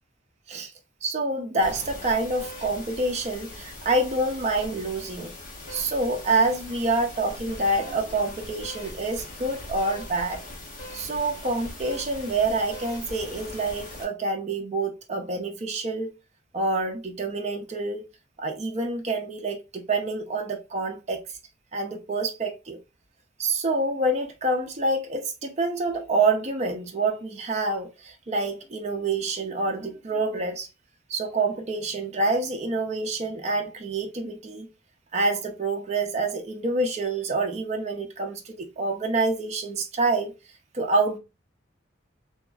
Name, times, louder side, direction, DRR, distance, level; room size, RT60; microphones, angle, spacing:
voice 1, 1.0-5.3 5.7-10.4 10.9-16.1 16.5-18.1 18.4-21.2 21.7-22.8 23.4-30.7 31.1-34.7 35.1-40.3 40.7-41.2, right 2 dB, 35° right, 0.5 m, -27 dB
sound 1, 1.6-14.0, left 1 dB, 45° left, 1.0 m, -41 dB
2.8 x 2.3 x 2.2 m
head